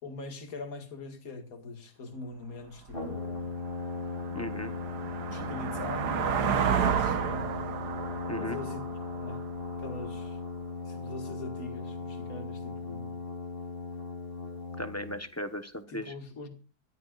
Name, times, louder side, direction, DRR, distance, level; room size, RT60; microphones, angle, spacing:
voice 1, 0.0-3.5 5.3-6.2 6.5-7.4 8.3-8.8 9.1-9.4 9.8-10.4 10.9-13.2 15.9-16.6, left 3 dB, 60° left, 2.4 m, -42 dB
Brass instrument, 2.9-15.2, left 4 dB, 30° left, 3.6 m, -38 dB
sound 1, 2.9-3.0 3.5-10.1, right 7 dB, 80° right, 1.6 m, -31 dB
voice 2, 4.3-4.7 8.3-8.6 14.8-16.1, left 1 dB, 10° left, 0.9 m, -36 dB
23.0 x 14.5 x 2.5 m
omnidirectional pair, 1.8 m